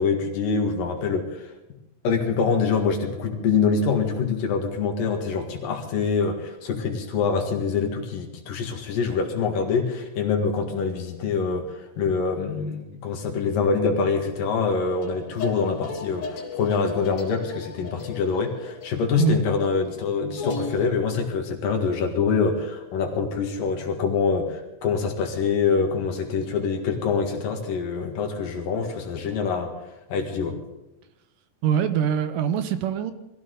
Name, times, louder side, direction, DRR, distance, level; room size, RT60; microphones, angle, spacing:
voice 1, 0.0-1.5 2.0-29.7 30.1-30.6, left 5 dB, 70° left, 3 dB, 3.6 m, -25 dB
sound 1, 14.9-20.9, left 3 dB, 55° left, 2.6 m, -36 dB
voice 2, 31.6-33.1, right 9 dB, 75° right, 10 dB, 2.4 m, -23 dB
22.0 x 15.0 x 3.9 m, 0.95 s
omnidirectional pair, 4.1 m